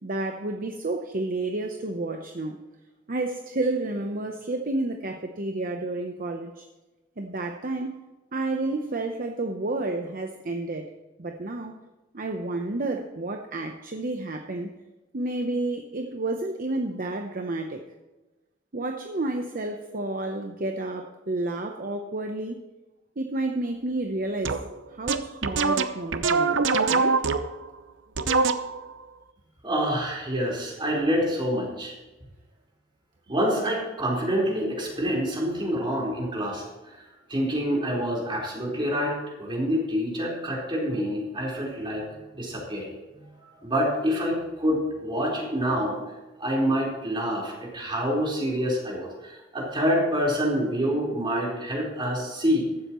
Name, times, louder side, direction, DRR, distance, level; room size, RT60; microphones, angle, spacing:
voice 1, 0.0-2.7 3.1-6.6 7.2-8.0 8.3-10.9 11.2-11.8 12.1-14.7 15.1-17.8 18.7-22.6 23.2-24.6 24.9-27.2, right 2 dB, 50° right, 4 dB, 0.8 m, -30 dB
sound 1, 24.5-24.7 25.1-27.7 28.2-28.9, right 4 dB, 85° right, 0.7 m, -24 dB
voice 2, 29.6-31.9 33.3-36.6 36.9-37.0 37.3-43.2 43.6-46.0 46.4-52.7, equal, 25° right, -3 dB, 4.4 m, -27 dB
15.0 x 12.5 x 3.1 m, 1.1 s
head